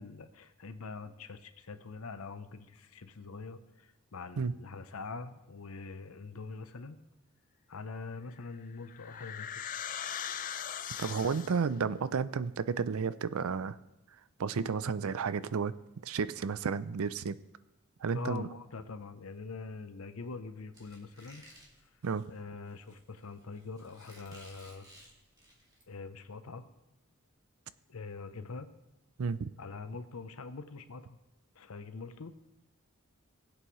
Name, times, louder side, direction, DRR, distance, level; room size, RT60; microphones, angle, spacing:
voice 1, 0.0-7.0 7.7-9.5 18.1-21.5 22.3-24.9 25.9-26.7 27.9-28.7 29.6-31.2 31.6-32.4, left 4 dB, 80° left, 10 dB, 0.8 m, -44 dB
sound 1, 8.3-11.8, left 9 dB, 40° left, 0.4 m, -40 dB
voice 2, 11.0-13.8 14.4-15.7 16.0-17.4 18.0-18.5 22.0-22.3 29.2-29.5, right 5 dB, 80° right, 15 dB, 0.5 m, -32 dB
Squeak, 20.7-25.8, right 1 dB, 20° right, 2.1 m, -57 dB
19.5 x 8.2 x 3.2 m, 0.94 s
head